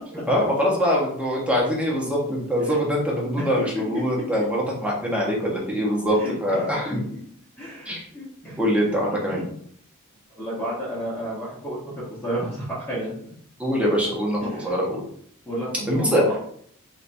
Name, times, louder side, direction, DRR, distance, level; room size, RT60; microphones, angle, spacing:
voice 1, 0.3-7.0 7.8-8.0 8.6-9.4 13.6-15.0 15.9-16.2, equal, 5° right, -4 dB, 1.2 m, -23 dB
voice 2, 6.2-6.6 6.8-7.2 7.6-8.6 9.3-9.4 10.4-11.9 12.2-13.1 14.4-14.7 15.5-16.3, right 1 dB, 10° left, -9 dB, 1.4 m, -32 dB
4.3 x 4.1 x 2.7 m, 0.62 s
head